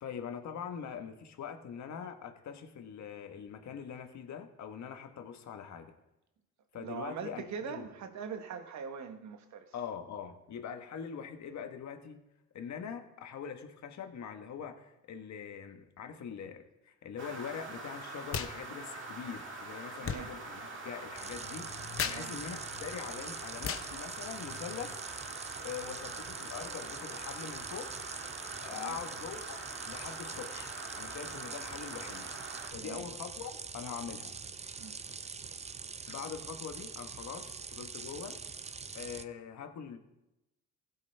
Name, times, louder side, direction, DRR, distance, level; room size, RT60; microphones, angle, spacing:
voice 1, 0.0-5.9 6.7-7.9 9.7-12.2 12.5-25.0 25.6-27.9 28.6-32.3 32.7-34.3 36.1-38.4 38.9-40.0, left 7 dB, 65° left, 6 dB, 1.4 m, -43 dB
voice 2, 6.7-9.7 19.9-20.3 22.0-22.4 28.7-29.0 32.7-33.1 34.8-34.9, right 7 dB, 70° right, 7 dB, 1.3 m, -42 dB
sound 1, 17.2-32.7, right 3 dB, 40° right, 1.8 m, -44 dB
sound 2, 18.3-18.6 18.8-25.0, left 8 dB, 45° left, 0.9 m, -41 dB
sound 3, 21.1-39.2, right 5 dB, 20° right, 0.5 m, -44 dB
16.0 x 8.4 x 3.5 m, 0.94 s
cardioid pair, 90°, 30 cm